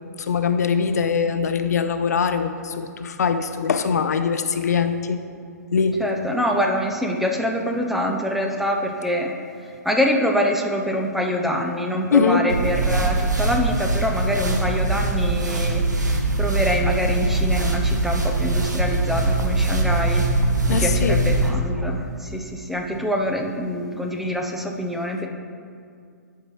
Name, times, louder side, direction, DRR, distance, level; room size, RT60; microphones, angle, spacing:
voice 1, 0.2-5.2 5.7-6.0 12.1-12.5 20.7-21.2, left 6 dB, 65° left, 9 dB, 0.5 m, -22 dB
voice 2, 6.0-9.3 9.6-20.3 20.7-25.3, equal, ahead, 2 dB, 0.5 m, -25 dB
sound 1, 12.5-21.5, right 2 dB, 80° right, 1.0 m, -22 dB
11.0 x 4.7 x 3.2 m, 2.3 s
figure-of-eight pair, 125°, 9 cm